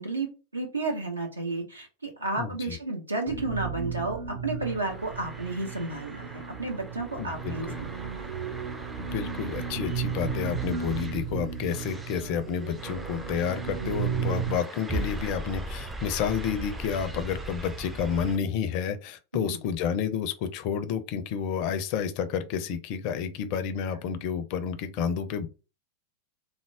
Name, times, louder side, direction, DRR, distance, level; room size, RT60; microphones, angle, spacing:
voice 1, 0.0-8.3 19.4-19.6, right 2 dB, 80° right, 1.0 m, -32 dB
voice 2, 2.4-2.8 7.2-7.8 9.0-25.5, left 7 dB, 45° left, 0.5 m, -30 dB
sound 1, 3.3-14.6, right 7 dB, 55° right, 0.7 m, -34 dB
sound 2, 4.6-18.4, right 1 dB, 10° right, 0.4 m, -40 dB
3.5 x 2.0 x 3.5 m
figure-of-eight pair, 90°, 0 cm